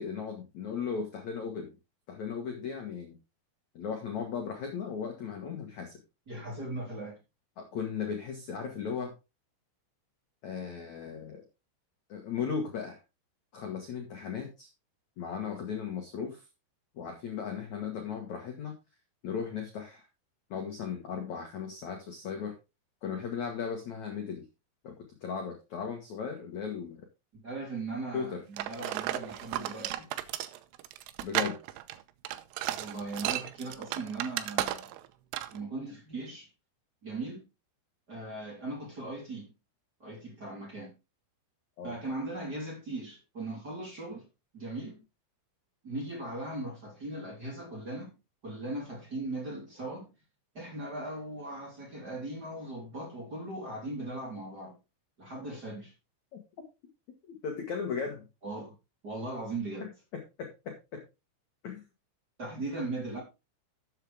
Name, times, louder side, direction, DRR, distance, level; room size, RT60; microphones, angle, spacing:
voice 1, 0.0-1.8 2.1-3.2 3.7-6.0 7.6-9.1 10.4-11.4 12.1-13.0 13.5-14.7 15.2-16.4 17.0-18.7 19.2-20.1 20.5-22.5 23.0-24.5 24.8-24.9 25.2-27.1 28.1-28.4 31.2-31.6 41.8-42.0 56.3-56.4 57.3-58.2 60.4-61.0 61.6-61.9, left 6 dB, 60° left, 1.9 m, -36 dB
voice 2, 6.3-7.2 27.4-30.1 32.7-34.9 35.5-36.5 37.0-37.4 38.1-39.5 40.0-40.9 41.8-44.3 44.5-45.0 45.8-48.1 48.4-50.1 50.5-54.7 55.2-55.9 58.4-58.7 59.0-59.9 62.4-63.2, right 2 dB, 20° right, 3.4 m, -38 dB
sound 1, 28.6-35.1 35.3-35.6, right 14 dB, 85° right, 3.3 m, -34 dB
12.5 x 7.8 x 3.5 m
omnidirectional pair, 5.7 m